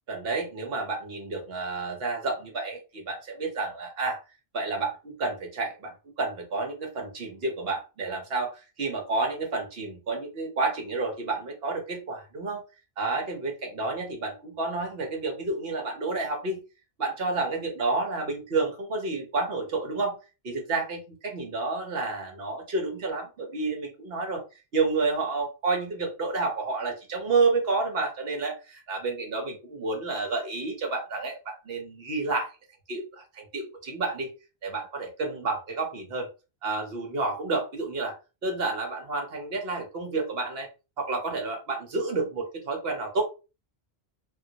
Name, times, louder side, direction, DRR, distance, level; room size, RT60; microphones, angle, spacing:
voice 1, 0.1-4.2 4.5-12.6 13.0-16.6 17.0-20.2 20.4-24.4 24.7-32.5 32.9-34.3 34.6-36.3 36.6-38.2 38.4-40.7 41.0-43.2, right 3 dB, 70° right, 2 dB, 1.2 m, -30 dB
3.7 x 2.2 x 2.8 m, 0.30 s
omnidirectional pair, 1.1 m